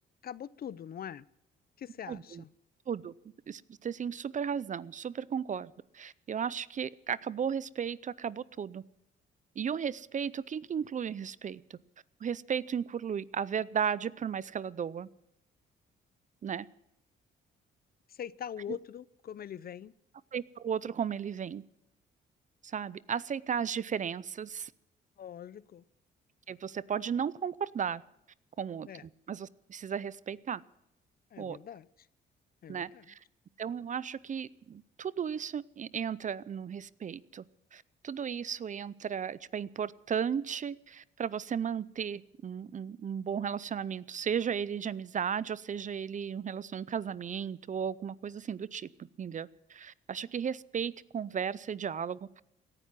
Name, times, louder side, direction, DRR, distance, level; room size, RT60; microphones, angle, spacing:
voice 1, 0.2-1.2 1.8-2.5 18.1-19.9 25.2-25.8 28.9-29.0 31.3-31.9 32.6-33.0, left 9 dB, 50° left, 19 dB, 0.6 m, -42 dB
voice 2, 2.1-2.4 2.9-3.1 3.5-8.8 9.6-11.8 12.2-15.1 16.4-16.7 20.3-21.6 22.6-24.7 26.5-28.0 28.6-30.6 31.4-31.6 32.7-33.2 33.6-37.4 37.7-52.3, right 7 dB, 40° right, 20 dB, 0.5 m, -35 dB
17.5 x 11.0 x 7.5 m, 0.80 s
cardioid pair, 90°, 20 cm